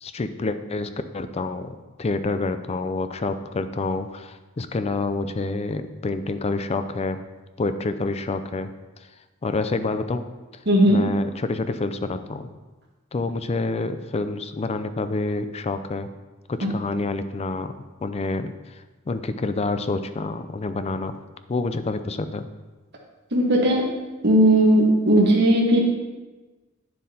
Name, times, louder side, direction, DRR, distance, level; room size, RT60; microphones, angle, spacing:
voice 1, 0.0-7.2 7.6-8.7 9.4-10.2 10.9-12.5 13.1-16.1 16.5-17.7 18.0-21.2 21.5-22.5, left 3 dB, 30° left, 10 dB, 0.4 m, -28 dB
voice 2, 10.7-11.0 16.6-16.7 23.3-23.8 24.2-25.8, right 1 dB, 55° right, -3 dB, 1.4 m, -17 dB
9.5 x 7.4 x 2.8 m, 1.2 s
head